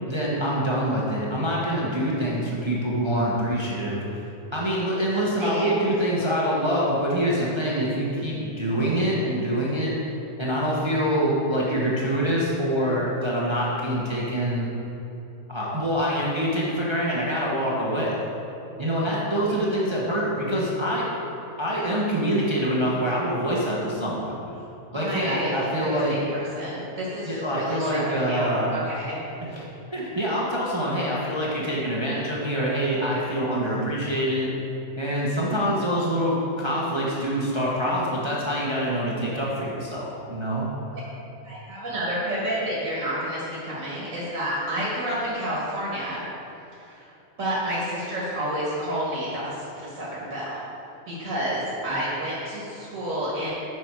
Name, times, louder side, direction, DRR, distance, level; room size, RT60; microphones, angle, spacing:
voice 1, 0.0-4.0 4.5-9.9 10.4-14.7 15.5-18.2 18.8-21.1 21.6-24.4 24.9-26.2 27.2-28.7 29.4-29.6 29.9-34.5 35.0-40.7, equal, 25° right, -5 dB, 0.9 m, -25 dB
voice 2, 5.1-5.9 24.9-25.5 25.8-29.2 40.9-41.0 41.4-46.2 46.8-47.1 47.4-50.6 51.1-53.5, equal, 70° right, -7 dB, 1.9 m, -30 dB
7.6 x 5.6 x 4.6 m, 2.9 s
omnidirectional pair, 1.4 m